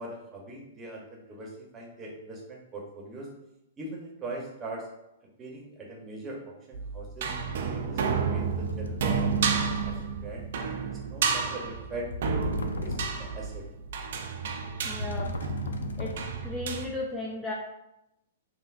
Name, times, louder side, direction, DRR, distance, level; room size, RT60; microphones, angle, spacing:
voice 1, 0.0-3.3 3.8-4.8 5.4-7.3 7.7-10.0 10.2-10.5 10.9-12.1 12.8-13.6, right 2 dB, 20° right, -2 dB, 1.0 m, -41 dB
sound 1, 6.7-16.8, right 5 dB, 60° right, 0.5 m, -31 dB
sound 2, 7.5-7.7 8.5-10.2 12.1-13.5 15.0-16.6, left 4 dB, 75° left, 0.4 m, -36 dB
voice 2, 14.8-15.3 16.0-16.1 16.4-17.5, left 2 dB, 5° left, -5 dB, 0.6 m, -34 dB
5.6 x 2.1 x 2.6 m, 0.87 s
figure-of-eight pair, 110°, 0 cm